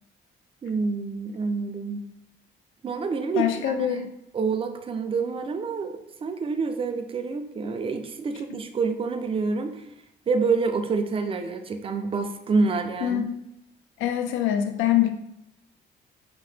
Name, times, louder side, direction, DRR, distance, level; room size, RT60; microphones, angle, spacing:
voice 1, 0.6-2.1 2.8-4.0 4.3-9.9 10.3-13.2, right 4 dB, 30° right, 6 dB, 0.3 m, -27 dB
voice 2, 3.4-4.1 13.0-13.4 14.0-15.1, left 11 dB, 80° left, 6 dB, 0.4 m, -24 dB
2.8 x 2.0 x 3.3 m, 0.80 s
cardioid pair, 90°, 20 cm